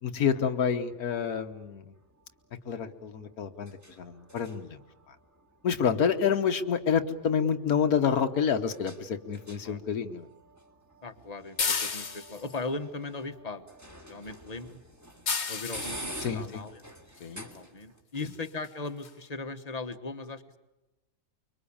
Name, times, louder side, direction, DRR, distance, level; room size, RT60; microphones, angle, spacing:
voice 1, 0.0-1.9 2.7-4.8 5.6-10.3 16.2-16.6 17.2-17.5 18.2-18.3, left 7 dB, 85° left, 7 dB, 1.6 m, -28 dB
sound 1, 0.6-18.0, equal, 10° right, 2.1 m, -48 dB
voice 2, 11.0-14.8 15.5-16.8 17.5-20.6, left 3 dB, 30° left, 8 dB, 1.3 m, -38 dB
sound 2, 11.6-12.6 15.3-16.0 17.5-17.6 18.2-18.3 18.6-18.7 19.0-19.1, left 5 dB, 50° left, 1.5 m, -31 dB
25.0 x 23.5 x 8.7 m, 1.0 s
omnidirectional pair, 1.5 m